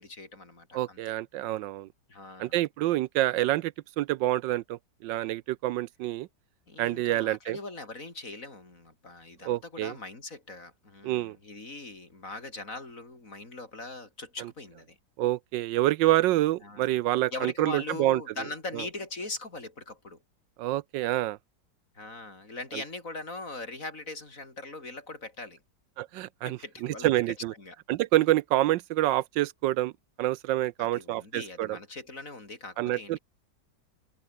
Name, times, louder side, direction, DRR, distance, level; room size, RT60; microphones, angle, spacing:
voice 1, 0.0-1.1 2.1-2.5 6.7-15.0 16.6-17.0 17.3-20.2 21.9-25.6 26.4-27.1 27.6-27.8 30.8-33.2, left 2 dB, 45° left, 4.7 m, -41 dB
voice 2, 0.7-1.9 2.4-6.3 6.8-7.6 9.4-10.0 11.0-11.4 14.4-14.5 15.2-18.2 18.7-18.9 20.6-21.4 22.7-22.8 26.0-27.5 27.9-29.9 30.2-31.8 32.8-33.2, right 15 dB, 80° right, 1.2 m, -27 dB
omnidirectional pair, 2.0 m